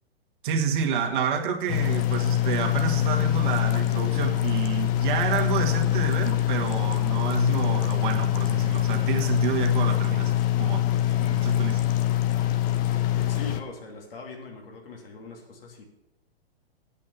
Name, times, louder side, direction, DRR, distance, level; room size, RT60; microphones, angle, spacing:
voice 1, 0.4-10.3 10.6-10.8 11.2-11.8, right 6 dB, 55° right, 2 dB, 1.9 m, -29 dB
sound 1, 1.7-13.6, left 13 dB, 30° left, 0.8 m, -24 dB
voice 2, 12.9-15.8, left 3 dB, 65° left, 1 dB, 3.1 m, -41 dB
8.6 x 8.3 x 7.1 m, 0.84 s
hypercardioid pair, 115°, 31 cm